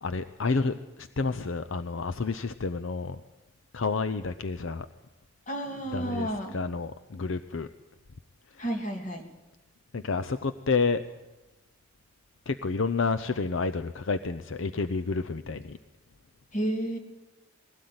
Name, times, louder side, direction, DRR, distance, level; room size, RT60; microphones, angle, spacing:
voice 1, 0.0-3.2 3.7-4.9 5.9-7.7 8.5-8.6 9.9-11.0 12.5-15.8, left 4 dB, 65° left, 10 dB, 0.7 m, -30 dB
voice 2, 5.5-6.6 8.6-9.2 16.5-17.0, right 1 dB, 35° left, 4 dB, 2.8 m, -31 dB
21.0 x 17.0 x 9.5 m, 1.1 s
head